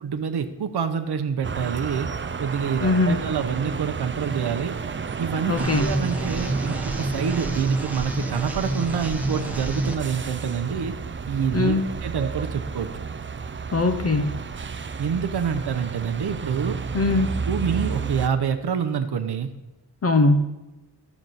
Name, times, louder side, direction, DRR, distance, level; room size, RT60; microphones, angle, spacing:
voice 1, 0.0-2.1 2.4-4.7 5.2-10.9 11.3-11.7 12.0-12.9 15.0-16.8 17.5-19.5, right 7 dB, 65° right, 7 dB, 0.7 m, -27 dB
sound 1, 1.4-18.3, right 5 dB, 30° right, 0.4 m, -32 dB
voice 2, 2.8-3.2 5.5-6.0 11.5-11.9 13.7-14.4 16.9-17.4 20.0-20.5, left 2 dB, 35° left, 7 dB, 0.6 m, -21 dB
sound 2, 5.6-10.0, right 1 dB, 5° right, 0.8 m, -29 dB
12.5 x 6.0 x 4.0 m, 1.0 s
wide cardioid pair, 85°, 42 cm